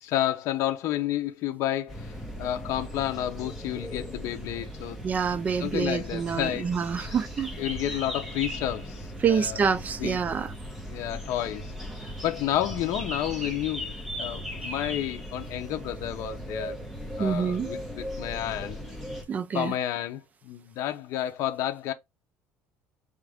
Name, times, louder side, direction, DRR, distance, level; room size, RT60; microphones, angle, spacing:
voice 1, 0.0-5.0 5.6-6.7 7.0-7.2 7.6-9.6 10.0-10.2 10.9-11.7 12.0-16.8 17.2-18.8 19.5-21.9, left 12 dB, 65° left, 0.6 m, -31 dB
sound 1, 1.9-19.2, equal, 5° right, 1.0 m, -38 dB
voice 2, 5.0-7.5 9.2-10.5 17.2-17.7 19.3-19.7, right 6 dB, 30° right, 0.4 m, -27 dB
5.0 x 2.5 x 3.3 m
cardioid pair, 145°, 6 cm